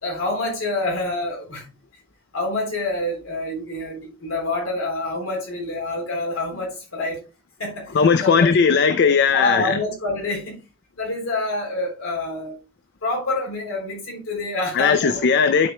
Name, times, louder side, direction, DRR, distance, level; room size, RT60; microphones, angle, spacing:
voice 1, 0.0-1.7 2.3-7.2 7.6-7.9 8.2-8.5 9.3-10.6 10.9-12.6 13.0-15.3, left 2 dB, 65° left, 3.5 m, -27 dB
voice 2, 7.9-9.8 14.7-15.7, left 6 dB, 50° left, 0.4 m, -17 dB
11.5 x 4.8 x 2.2 m
head